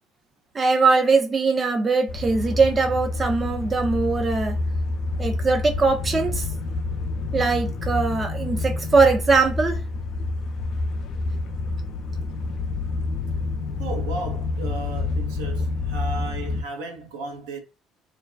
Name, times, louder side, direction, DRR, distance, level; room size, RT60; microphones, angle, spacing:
voice 1, 0.5-4.6 5.2-6.5 7.3-9.8, right 4 dB, 30° right, 0.5 m, -21 dB
sound 1, 2.1-16.6, left 3 dB, 60° left, 0.5 m, -28 dB
voice 2, 13.8-17.6, right 3 dB, 75° right, 0.7 m, -34 dB
2.5 x 2.2 x 2.3 m
hypercardioid pair, 55°, 0 cm